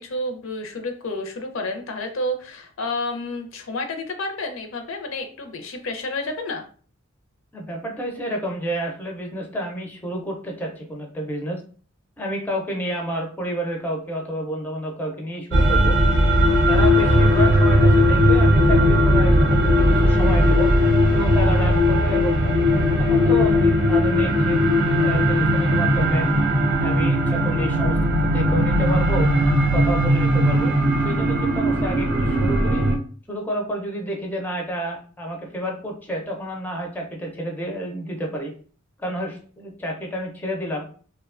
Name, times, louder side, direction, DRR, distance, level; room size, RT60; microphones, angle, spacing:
voice 1, 0.0-6.6, left 2 dB, 70° left, 5 dB, 0.5 m, -30 dB
voice 2, 7.5-11.6 12.2-16.0 16.6-20.7 21.1-22.5 23.0-24.6 25.0-26.3 26.8-29.3 29.7-30.7 31.0-32.8 33.3-38.5 39.0-40.8, right 1 dB, 10° left, 0 dB, 0.4 m, -29 dB
sound 1, 15.5-33.0, equal, 60° right, 0.5 m, -18 dB
2.7 x 2.1 x 2.3 m, 0.42 s
head